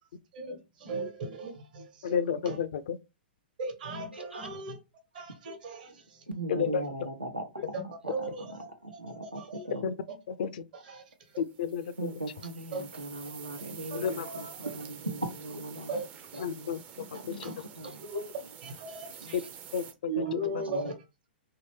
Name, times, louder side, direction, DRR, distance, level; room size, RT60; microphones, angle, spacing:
voice 1, 0.3-2.2 2.4-2.6 3.6-4.7 5.1-6.2 7.7-8.4 9.0-9.6 10.7-11.0 12.7-12.8 13.9-14.5 15.9-16.0 17.4-17.5 18.1-18.3 18.6-19.4 20.1-20.9, right 2 dB, 55° right, 1.1 m, -37 dB
voice 2, 2.0-3.0 6.5-6.8 9.8-9.9 10.4-10.6 11.4-11.9 14.0-14.3 16.4-16.8 17.3-17.5 19.3-19.4 19.7-20.6, left 7 dB, 50° left, 0.4 m, -31 dB
voice 3, 4.1-4.5 6.3-9.9 12.0-16.1 16.3-18.1 18.4-18.6 19.2-19.5 20.6-20.9, right 1 dB, 90° right, 0.8 m, -39 dB
sound 1, 11.4-19.9, right 8 dB, 25° right, 0.5 m, -48 dB
3.0 x 2.8 x 3.2 m
figure-of-eight pair, 110°, 6 cm